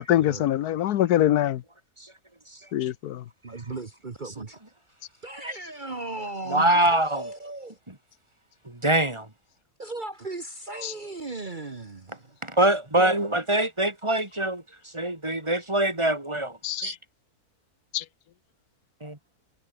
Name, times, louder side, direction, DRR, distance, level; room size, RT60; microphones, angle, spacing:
voice 1, 0.0-1.6 2.7-3.2 10.8-10.9 16.6-16.9 17.9-18.0, left 12 dB, 80° left, 1.3 m, -24 dB
voice 2, 3.4-4.6 5.2-7.8 9.8-12.4, right 2 dB, 35° right, 1.4 m, -36 dB
voice 3, 6.5-7.2 7.9-8.0 8.6-9.3 12.4-16.9 19.0-19.2, right 1 dB, 20° right, 2.7 m, -24 dB
omnidirectional pair, 1.6 m